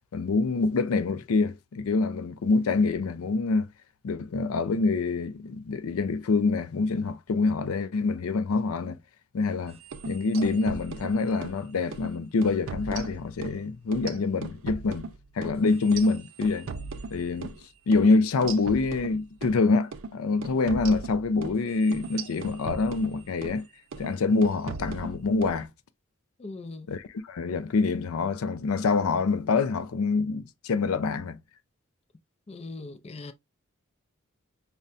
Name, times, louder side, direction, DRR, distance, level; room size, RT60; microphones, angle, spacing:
voice 1, 0.1-3.7 4.0-9.0 9.3-9.8 10.1-15.1 15.4-16.7 17.1-17.5 17.9-23.6 24.0-25.7 26.9-31.4, left 3 dB, 90° left, 0.4 m, -26 dB
sound 1, 9.8-11.6 11.9-12.1 12.4-13.6 13.9-17.6 17.9-18.1 18.4-19.6 19.9-20.1 20.4-23.6 23.9-24.2 24.4-25.6, right 4 dB, 65° right, 0.5 m, -38 dB
voice 2, 26.4-26.9 32.5-33.3, left 3 dB, 30° left, 0.4 m, -40 dB
5.4 x 2.1 x 2.5 m
head